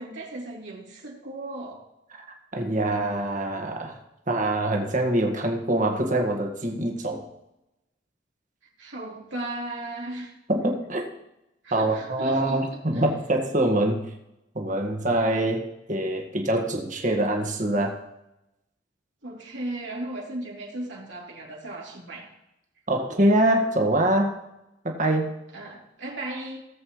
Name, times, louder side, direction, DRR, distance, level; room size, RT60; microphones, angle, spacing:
voice 1, 0.0-1.8 8.8-10.3 11.6-13.0 19.2-22.3 25.5-26.6, right 1 dB, 85° right, -2 dB, 3.2 m, -36 dB
voice 2, 2.5-4.0 4.3-7.3 10.5-11.0 11.7-14.0 14.5-18.0 22.9-24.3 24.8-25.3, right 1 dB, 45° right, 2 dB, 1.8 m, -24 dB
18.0 x 7.7 x 3.2 m, 0.88 s
head